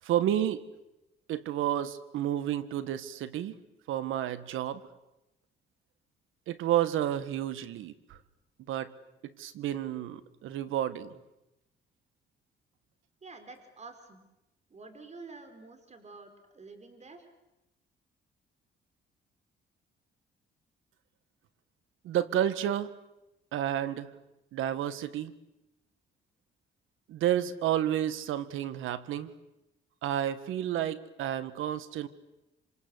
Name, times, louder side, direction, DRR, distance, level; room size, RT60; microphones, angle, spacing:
voice 1, 0.0-0.6 1.3-3.6 3.9-4.8 6.5-8.2 8.7-8.9 9.2-11.2 22.0-22.9 23.5-24.1 24.5-25.3 27.1-29.3 30.0-32.1, right 11 dB, 85° right, 14 dB, 1.7 m, -31 dB
voice 2, 13.2-14.2 14.7-17.3, right 3 dB, 35° right, 7 dB, 5.0 m, -49 dB
27.0 x 26.5 x 8.2 m, 0.93 s
cardioid pair, 90°, 20 cm